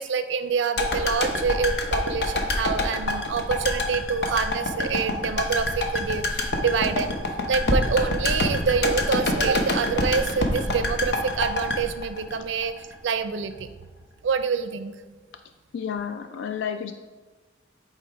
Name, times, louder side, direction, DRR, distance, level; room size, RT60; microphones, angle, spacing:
voice 1, 0.0-7.2 7.5-13.7 14.2-14.9, right 5 dB, 85° right, 11 dB, 0.4 m, -26 dB
sound 1, 0.8-12.9 13.2-13.3, left 2 dB, 60° left, 0.8 m, -26 dB
voice 2, 15.7-16.9, left 7 dB, 85° left, 8 dB, 0.3 m, -31 dB
7.8 x 2.9 x 4.8 m, 1.3 s
head